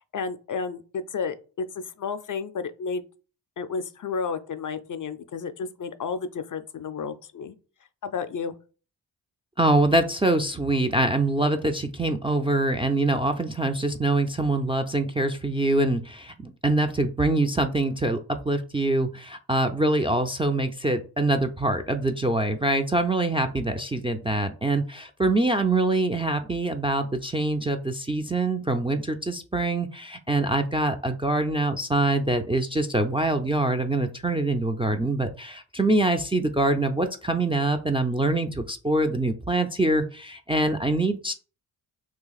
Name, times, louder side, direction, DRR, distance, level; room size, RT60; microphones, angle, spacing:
voice 1, 0.0-3.0 3.6-7.5 8.0-8.6, left 5 dB, 45° left, 0.5 m, -32 dB
voice 2, 9.6-18.2 18.4-41.3, right 2 dB, 10° right, 0.4 m, -24 dB
2.8 x 2.4 x 4.0 m
supercardioid pair, 50°, 47 cm